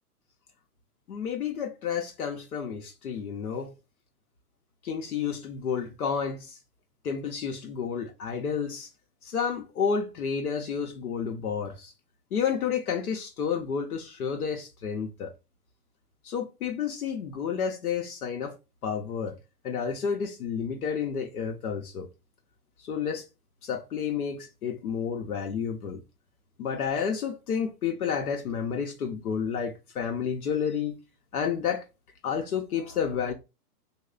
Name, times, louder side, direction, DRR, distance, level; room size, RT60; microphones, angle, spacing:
voice 1, 1.1-3.7 4.8-6.6 7.0-8.9 9.2-11.9 12.3-15.3 16.2-18.6 18.8-19.4 19.6-22.1 22.8-23.2 23.6-26.0 26.6-31.0 31.3-31.8 32.2-33.3, left 7 dB, 65° left, 0.9 m, -30 dB
3.0 x 2.2 x 3.7 m
hypercardioid pair, 120°, 48 cm